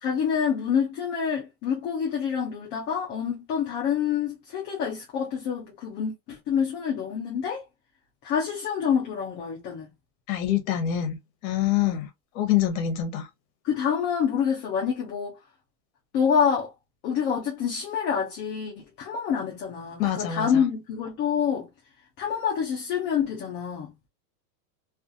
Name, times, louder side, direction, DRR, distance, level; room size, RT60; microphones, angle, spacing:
voice 1, 0.0-7.6 8.2-9.9 11.8-12.0 13.6-15.4 16.1-16.7 17.0-21.7 22.2-23.9, left 7 dB, 25° left, 0.4 m, -27 dB
voice 2, 10.3-11.2 11.4-12.1 12.3-13.3 20.0-20.6, left 11 dB, 55° left, 0.9 m, -25 dB
2.4 x 2.4 x 2.5 m
supercardioid pair, 140°, 49 cm